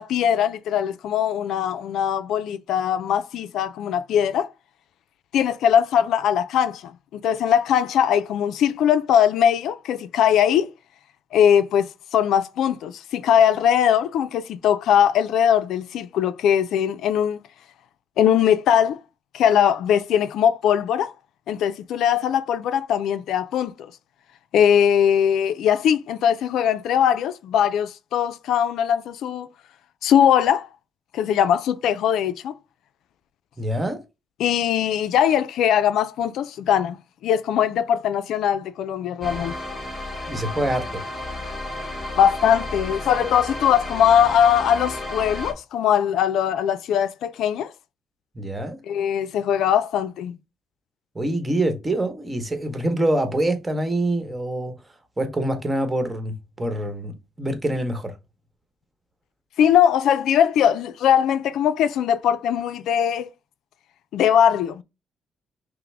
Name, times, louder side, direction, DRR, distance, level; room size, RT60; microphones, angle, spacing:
voice 1, 0.0-4.5 5.3-10.7 11.3-17.4 18.2-19.0 19.3-21.1 21.5-23.9 24.5-29.5 30.0-30.7 31.1-32.5 34.4-39.6 42.2-47.7 48.9-50.4 59.6-63.3 64.1-64.8, left 9 dB, 80° left, 0.3 m, -20 dB
voice 2, 33.6-34.0 40.3-41.0 48.3-48.8 51.1-54.8 55.2-58.2, right 1 dB, 20° right, 1.0 m, -25 dB
sound 1, 39.2-45.5, left 2 dB, 25° left, 1.8 m, -32 dB
5.7 x 2.0 x 3.3 m
cardioid pair, 90°, 0 cm